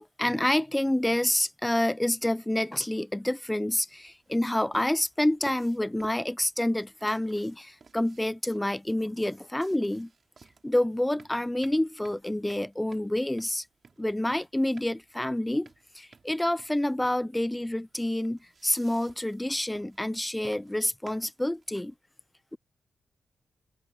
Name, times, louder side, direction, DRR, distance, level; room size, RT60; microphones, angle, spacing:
voice 1, 0.0-10.1 10.6-13.7 14.0-15.7 15.9-21.9, left 1 dB, 10° left, 0.4 m, -28 dB
sound 1, 3.9-21.9, right 5 dB, 50° right, 3.6 m, -55 dB
cardioid pair, 80°, 0 cm